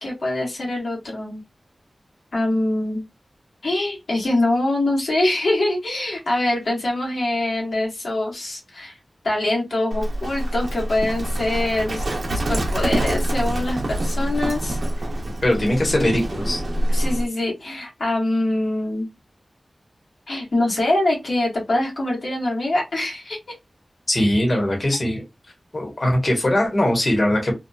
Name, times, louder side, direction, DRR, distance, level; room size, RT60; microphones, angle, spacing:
voice 1, 0.0-1.4 2.3-3.0 3.6-9.0 9.2-12.0 12.3-14.8 16.9-19.1 20.3-23.4, left 1 dB, 80° left, -2 dB, 1.1 m, -24 dB
Livestock farm animals working animals, 9.9-17.3, right 1 dB, 70° right, 0.7 m, -25 dB
voice 2, 15.4-16.6 24.1-25.2 25.7-27.5, left 1 dB, 50° left, 0 dB, 1.1 m, -20 dB
2.7 x 2.2 x 2.2 m, 0.21 s
wide cardioid pair, 65°, 0 cm